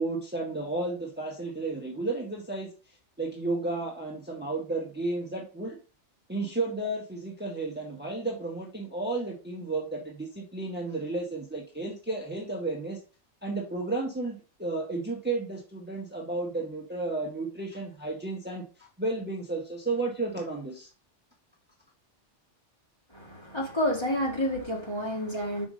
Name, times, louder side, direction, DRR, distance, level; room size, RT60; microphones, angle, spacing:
voice 1, 0.0-2.7 3.2-5.8 6.3-13.0 13.4-18.6 19.0-20.9, right 2 dB, 10° right, 1.5 m, -32 dB
voice 2, 23.1-25.7, equal, 20° left, 2.1 m, -29 dB
6.0 x 5.3 x 5.2 m
omnidirectional pair, 1.2 m